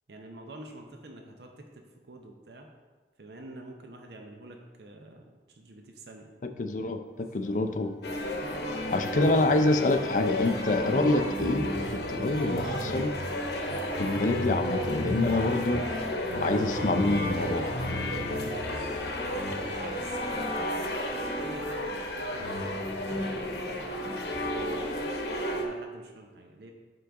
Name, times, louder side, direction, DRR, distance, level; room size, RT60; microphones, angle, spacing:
voice 1, 0.1-2.7 3.2-6.3 8.7-8.9 18.6-19.1 19.6-20.6 21.2-25.2 25.5-26.7, right 2 dB, 65° right, 3 dB, 0.7 m, -47 dB
voice 2, 6.4-7.9 8.9-13.1 14.0-15.8 16.3-17.7, left 2 dB, 45° left, 8 dB, 0.4 m, -26 dB
sound 1, 7.2-18.9, left 1 dB, ahead, 2.1 m, -51 dB
sound 2, 8.0-25.7, left 1 dB, 65° left, 0.9 m, -32 dB
9.4 x 3.9 x 3.5 m, 1.4 s
head